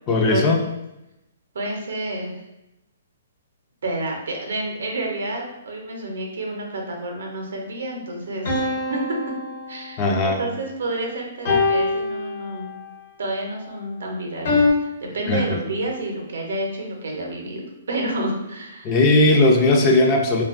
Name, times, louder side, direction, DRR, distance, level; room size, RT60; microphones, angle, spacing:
voice 1, 0.1-0.6 10.0-10.4 15.3-15.6 18.8-20.4, left 2 dB, 25° left, 2 dB, 0.3 m, -17 dB
voice 2, 1.5-2.4 3.8-8.6 8.9-9.2 9.7-12.8 13.2-14.5 14.8-17.6 17.9-18.9, right 2 dB, 80° right, 0 dB, 0.6 m, -29 dB
sound 1, 8.5-10.2 11.5-12.9 14.5-14.7, left 3 dB, 65° left, 1.0 m, -23 dB
2.5 x 2.2 x 2.4 m, 0.89 s
hypercardioid pair, 160°, 0 cm